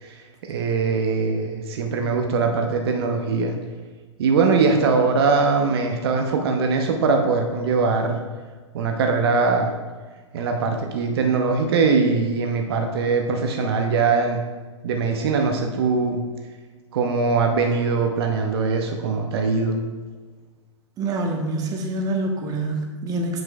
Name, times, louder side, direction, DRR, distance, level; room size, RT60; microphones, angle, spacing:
voice 1, 0.5-3.6 4.2-8.2 8.7-9.7 10.3-14.4 14.8-16.2 16.9-19.8, right 4 dB, 50° right, 4 dB, 0.8 m, -21 dB
voice 2, 21.0-23.4, right 2 dB, 25° right, 3 dB, 1.0 m, -26 dB
7.6 x 7.5 x 2.3 m, 1.4 s
figure-of-eight pair, 105°, 16 cm